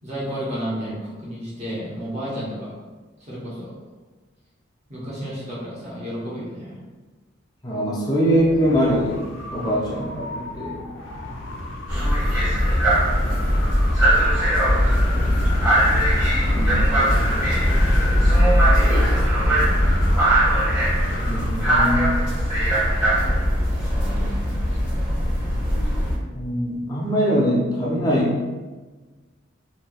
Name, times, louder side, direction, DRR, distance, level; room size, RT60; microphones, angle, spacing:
voice 1, 0.0-2.7 3.2-3.7 4.9-6.8 9.6-9.7 14.5-15.6, equal, 35° right, -7 dB, 1.0 m, -32 dB
voice 2, 7.6-9.2 9.5-10.8 16.5-17.3 21.3-22.2 26.3-28.4, equal, 20° left, -4 dB, 0.6 m, -22 dB
Wind, 8.2-21.9, left 1 dB, 75° left, 0.5 m, -33 dB
sound 1, 11.9-26.1, equal, 5° right, 1.2 m, -19 dB
3.2 x 2.7 x 2.3 m, 1.3 s
head